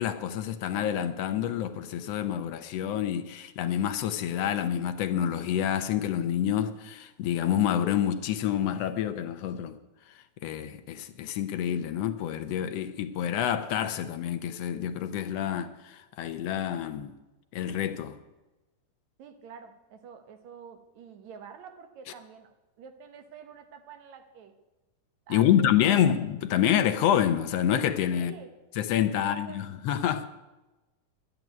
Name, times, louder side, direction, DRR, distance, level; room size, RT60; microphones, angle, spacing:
voice 1, 0.0-9.8 10.1-17.1 17.5-18.2 25.3-28.3 28.8-30.3, left 10 dB, 75° left, 1.6 m, -27 dB
voice 2, 19.2-24.5 25.3-26.1 28.1-28.5 29.2-29.7, right 6 dB, 70° right, 2.5 m, -48 dB
11.5 x 9.1 x 9.4 m
omnidirectional pair, 3.4 m